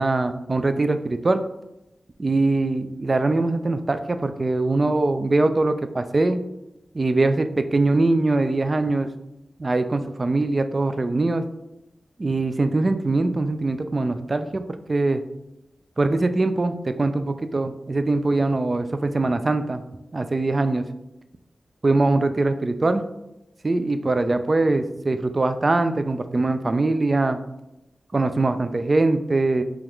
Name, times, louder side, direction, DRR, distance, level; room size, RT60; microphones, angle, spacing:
voice 1, 0.0-1.4 2.2-6.4 6.9-9.1 9.6-11.4 12.2-15.2 16.0-19.8 20.1-20.8 21.8-23.0 23.6-27.4 28.1-29.6, right 2 dB, 40° right, 9 dB, 0.3 m, -22 dB
5.0 x 2.4 x 3.0 m, 0.91 s
wide cardioid pair, 70°, 0 cm